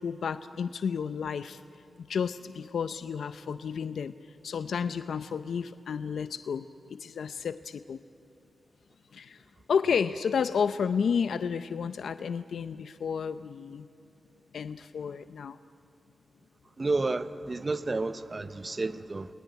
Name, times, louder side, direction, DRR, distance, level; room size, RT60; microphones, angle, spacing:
voice 1, 0.0-1.6 2.1-4.1 4.4-8.0 9.1-9.4 9.7-13.9 14.5-15.6, left 6 dB, 85° left, 0.6 m, -31 dB
voice 2, 16.8-19.3, right 3 dB, 30° right, 0.9 m, -31 dB
29.0 x 20.5 x 9.3 m
wide cardioid pair, 140°, 0 cm